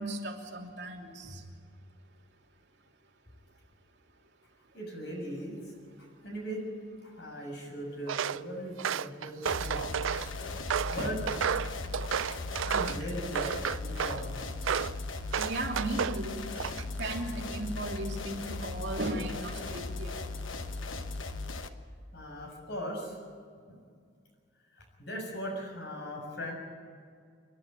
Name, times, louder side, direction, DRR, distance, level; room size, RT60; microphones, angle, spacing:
voice 1, 0.0-1.4 11.0-11.2 15.4-16.4 17.0-20.1, right 2 dB, 60° right, -1 dB, 3.0 m, -36 dB
voice 2, 4.7-5.6 6.0-6.7 7.0-9.9 10.9-11.2 12.6-13.5 13.8-14.4 22.1-23.2 23.7-23.8 24.7-26.5, equal, 60° left, 1 dB, 6.5 m, -39 dB
Walk footsteps, 8.1-8.4 8.8-10.3 10.7-13.0 13.4-14.2 14.6-15.0 15.3-16.2 16.6-17.0, right 8 dB, 85° right, 0.4 m, -32 dB
sound 1, 9.5-21.7, left 3 dB, 85° left, 1.2 m, -38 dB
28.5 x 11.0 x 9.3 m, 2.1 s
head